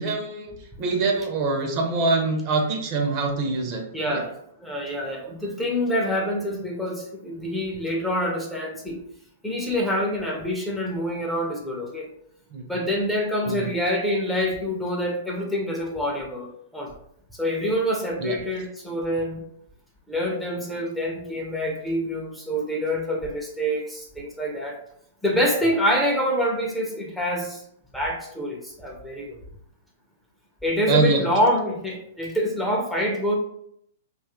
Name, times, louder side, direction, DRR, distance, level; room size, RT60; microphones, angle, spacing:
voice 1, 0.0-4.2 12.5-12.6 13.5-13.7 18.2-18.4 30.9-31.3, right 3 dB, 40° right, 3 dB, 0.6 m, -24 dB
voice 2, 3.9-4.3 4.6-9.0 9.4-12.1 12.7-16.9 17.3-19.4 20.1-24.8 25.2-27.6 27.9-29.4 30.6-33.3, equal, 5° left, -2 dB, 0.6 m, -26 dB
2.8 x 2.4 x 2.9 m, 0.71 s
hypercardioid pair, 125°, 0 cm